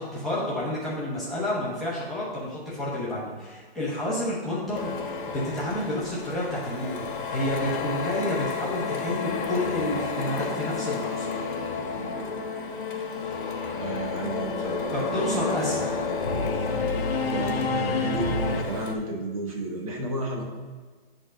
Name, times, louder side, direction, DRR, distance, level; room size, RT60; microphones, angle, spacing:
voice 1, 0.0-4.9 5.3-11.3 14.6-16.0, left 1 dB, ahead, -11 dB, 1.0 m, -30 dB
Printer, 4.7-18.9, left 5 dB, 55° left, 1.2 m, -33 dB
Singing / Musical instrument, 8.7-18.6, left 4 dB, 70° left, 1.0 m, -31 dB
voice 2, 13.7-16.1 17.2-20.4, right 2 dB, 35° right, 0 dB, 1.2 m, -33 dB
8.1 x 3.8 x 6.6 m, 1.5 s
hypercardioid pair, 175°, 31 cm